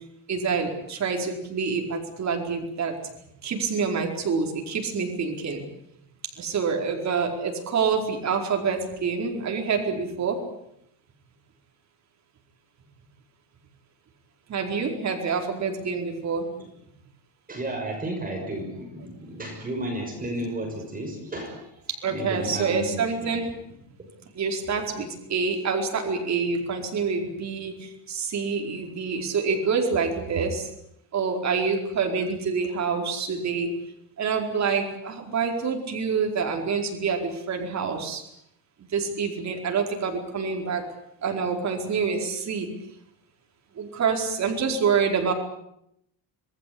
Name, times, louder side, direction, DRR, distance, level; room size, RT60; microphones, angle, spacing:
voice 1, 0.3-3.0 3.4-5.6 6.4-10.4 14.5-16.5 22.0-23.5 24.3-30.7 31.1-33.7 34.2-38.2 38.9-40.9 41.2-42.7 43.8-45.3, right 5 dB, 40° right, 2 dB, 4.7 m, -27 dB
voice 2, 17.5-21.7 22.1-23.4 24.0-24.1, right 1 dB, 20° right, 2 dB, 6.3 m, -33 dB
27.0 x 19.5 x 8.7 m, 0.77 s
cardioid pair, 155°, 41 cm